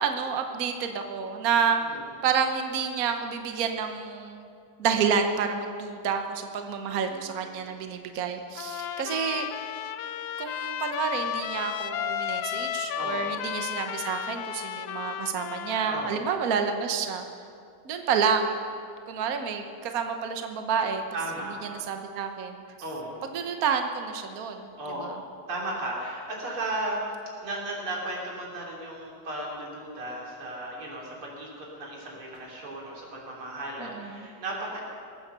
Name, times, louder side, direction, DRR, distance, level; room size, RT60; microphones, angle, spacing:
voice 1, 0.0-4.5 4.8-9.7 10.4-17.2 17.8-18.6 19.1-21.0 21.7-22.6 23.3-24.7 25.0-25.2 33.8-34.3, right 6 dB, 50° right, 5 dB, 1.2 m, -29 dB
voice 2, 7.0-7.7 13.0-13.3 15.9-16.3 21.1-21.7 22.8-23.2 24.8-27.0 27.4-34.8, right 1 dB, 85° right, -3 dB, 4.2 m, -35 dB
Trumpet, 8.6-16.1, left 10 dB, 75° left, 1.3 m, -33 dB
20.5 x 9.0 x 6.8 m, 2.3 s
omnidirectional pair, 2.3 m